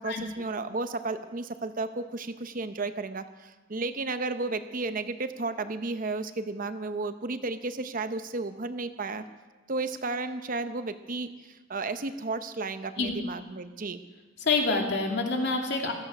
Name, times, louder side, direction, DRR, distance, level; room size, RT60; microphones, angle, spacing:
voice 1, 0.0-9.2 9.7-14.0, right 3 dB, 45° right, 10 dB, 0.8 m, -33 dB
voice 2, 14.4-15.9, left 3 dB, 65° left, 1 dB, 2.6 m, -27 dB
16.0 x 13.5 x 6.2 m, 1.2 s
head